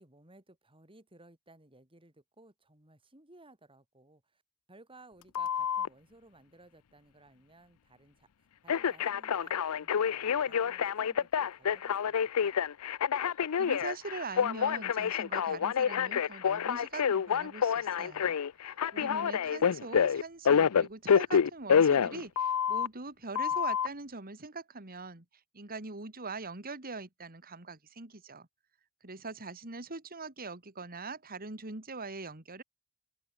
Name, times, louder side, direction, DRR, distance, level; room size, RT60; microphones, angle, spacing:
voice 1, 0.0-4.4 4.7-12.6 18.9-19.9, right 2 dB, 25° right, 5.6 m, -59 dB
Telephone, 5.3-5.9 8.7-22.9 23.3-23.9, left 7 dB, 80° left, 0.5 m, -28 dB
voice 2, 13.6-18.4 18.9-25.2 25.5-28.5 29.0-32.6, right 3 dB, 40° right, 2.6 m, -42 dB
open air
head